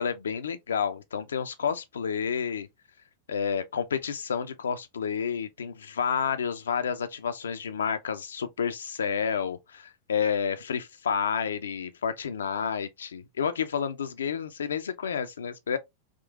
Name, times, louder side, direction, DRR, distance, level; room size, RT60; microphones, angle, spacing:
voice 1, 0.0-2.7 3.3-15.8, left 7 dB, 65° left, 0.4 m, -30 dB
3.6 x 2.5 x 2.3 m
figure-of-eight pair, 90°, 0 cm